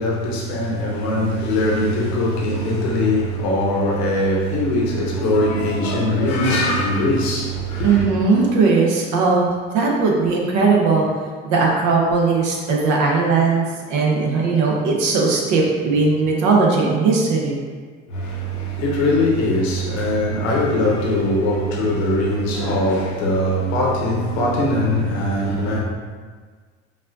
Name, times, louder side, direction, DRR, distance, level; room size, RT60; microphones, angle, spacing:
voice 1, 0.0-8.1 18.1-25.8, left 1 dB, 85° left, 0.9 m, -21 dB
voice 2, 7.8-11.1 11.4-17.6, right 4 dB, 70° right, 0.9 m, -18 dB
5.3 x 2.4 x 2.5 m
hypercardioid pair, 70°, 31 cm